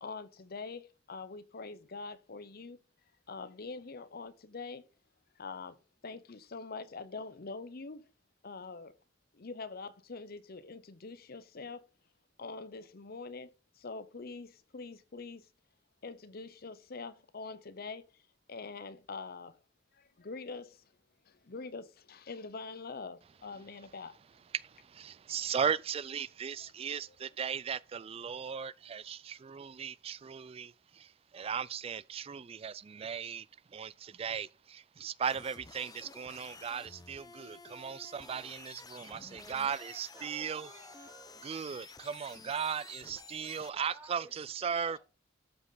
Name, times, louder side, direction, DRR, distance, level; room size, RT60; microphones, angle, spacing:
voice 1, 0.0-2.8 3.3-4.9 5.4-5.8 6.0-8.1 8.4-9.0 9.3-11.9 12.4-15.5 16.0-18.2 18.5-19.6 19.9-20.9 21.2-24.2 27.1-27.2, left 4 dB, 55° left, 0.7 m, -44 dB
voice 2, 24.5-33.5 33.7-40.7 41.4-45.0, right 7 dB, 30° right, 0.3 m, -37 dB
sound 1, 35.2-43.7, left 4 dB, 20° left, 0.7 m, -52 dB
voice 3, 39.3-41.4 43.3-45.0, right 1 dB, 15° right, 2.8 m, -55 dB
12.5 x 5.3 x 4.1 m
head